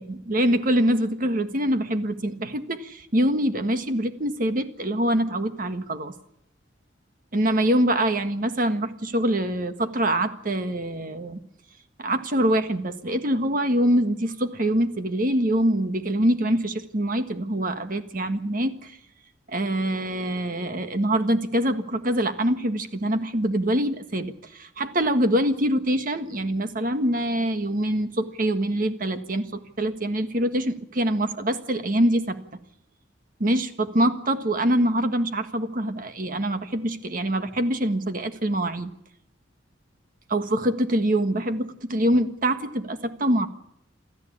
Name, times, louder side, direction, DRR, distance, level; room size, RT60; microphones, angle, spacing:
voice 1, 0.0-6.1 7.3-11.4 12.0-19.0 19.5-29.5 29.8-32.4 33.4-38.9 40.3-43.5, right 1 dB, 45° right, 8 dB, 1.6 m, -24 dB
28.0 x 13.5 x 8.6 m, 0.80 s
head